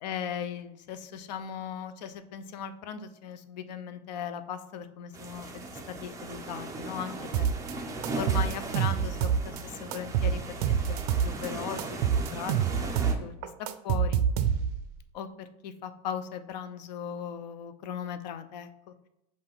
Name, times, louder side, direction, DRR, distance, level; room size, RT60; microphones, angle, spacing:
voice 1, 0.0-5.6 6.0-7.5 8.1-9.6 9.8-10.4 10.9-11.0 11.2-11.9 12.3-12.5 13.2-13.3 13.8-14.2 15.1-18.9, left 8 dB, 90° left, 11 dB, 0.5 m, -38 dB
sound 1, 5.1-13.1, right 2 dB, 15° right, 0.5 m, -38 dB
sound 2, 7.3-7.7 8.0-9.6 9.9-11.5 11.8-14.9, right 8 dB, 65° right, 0.4 m, -27 dB
5.7 x 2.5 x 3.4 m, 0.85 s
supercardioid pair, 150°, 21 cm